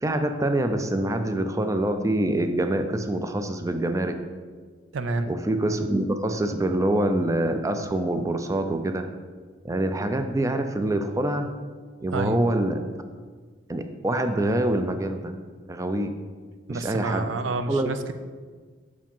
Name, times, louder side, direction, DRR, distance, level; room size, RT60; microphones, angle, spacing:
voice 1, 0.0-4.2 5.3-9.1 9.6-11.5 12.0-12.8 13.7-15.3 15.7-16.2 16.7-17.3 17.7-17.9, right 1 dB, 15° right, 7 dB, 0.4 m, -25 dB
voice 2, 4.9-5.3 12.1-12.4 16.7-18.1, right 2 dB, 75° right, 9 dB, 0.5 m, -29 dB
6.2 x 5.0 x 5.3 m, 1.5 s
head